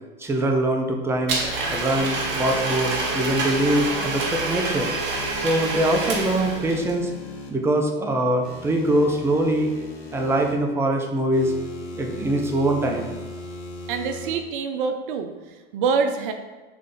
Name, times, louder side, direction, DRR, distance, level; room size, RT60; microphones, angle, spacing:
voice 1, 0.2-1.4 1.7-4.9 5.4-7.1 7.5-9.7 10.1-11.5 11.9-13.1, right 1 dB, 10° right, 2 dB, 0.5 m, -23 dB
Domestic sounds home sounds, 1.3-6.9, right 3 dB, 35° right, 0.9 m, -27 dB
sound 1, 1.6-4.2 5.1-7.5 8.4-10.5 11.3-14.4, left 2 dB, 85° left, 1.0 m, -39 dB
voice 2, 13.9-15.3 15.7-16.3, right 5 dB, 55° right, 6 dB, 0.5 m, -25 dB
3.6 x 3.3 x 3.8 m, 1.2 s
hypercardioid pair, 100°, 30 cm